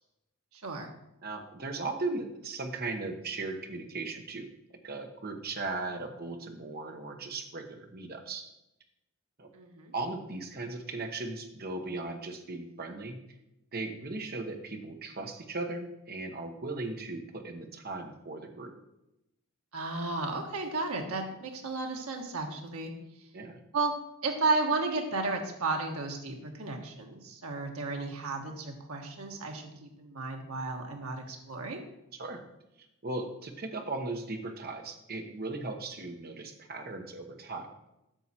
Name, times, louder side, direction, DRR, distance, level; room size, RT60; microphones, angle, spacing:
voice 1, 0.5-0.9 9.5-9.9 19.7-22.9 23.7-23.9 24.2-31.8, right 3 dB, 80° right, 2 dB, 1.3 m, -33 dB
voice 2, 1.2-4.5 4.8-8.4 9.4-9.5 9.9-13.2 13.7-18.7 23.3-23.6 32.1-32.4 33.0-37.7, right 3 dB, 45° right, 5 dB, 1.0 m, -37 dB
8.9 x 6.4 x 4.3 m, 0.89 s
head